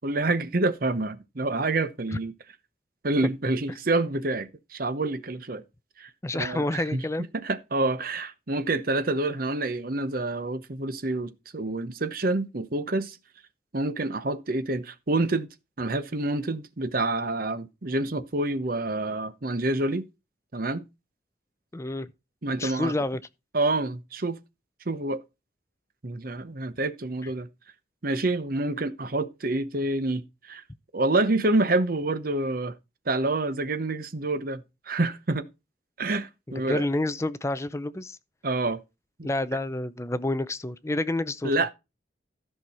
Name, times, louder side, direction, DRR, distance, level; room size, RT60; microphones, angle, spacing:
voice 1, 0.0-2.3 3.0-5.6 6.0-7.0 7.3-13.2 13.7-15.5 15.8-20.1 20.5-20.8 22.4-22.9 23.5-24.4 24.9-25.2 26.0-27.5 28.0-30.6 30.9-32.7 33.1-35.5 36.0-36.8 38.4-38.8 39.2-39.3 41.4-41.7, right 2 dB, 50° right, 0.9 m, -27 dB
voice 2, 6.2-7.3 21.7-22.1 22.6-23.2 36.7-38.2 39.2-41.5, left 2 dB, 15° left, 0.5 m, -29 dB
13.5 x 6.1 x 4.2 m
head